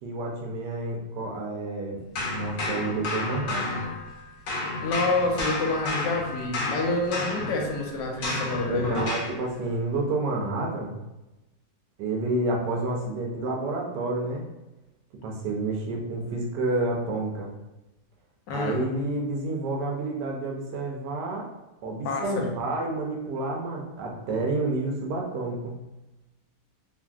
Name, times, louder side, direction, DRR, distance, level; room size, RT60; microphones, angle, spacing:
voice 1, 0.0-2.0 2.3-3.8 8.7-11.0 12.0-14.4 15.2-17.5 18.5-21.5 21.8-25.7, right 2 dB, 75° right, -1 dB, 1.2 m, -29 dB
sound 1, 2.2-4.2 4.5-9.4, left 2 dB, 65° left, 1.2 m, -31 dB
voice 2, 4.8-9.0 18.5-18.8 22.0-22.5, left 3 dB, 85° left, 1 dB, 1.3 m, -28 dB
3.0 x 2.5 x 2.3 m, 1.0 s
omnidirectional pair, 1.9 m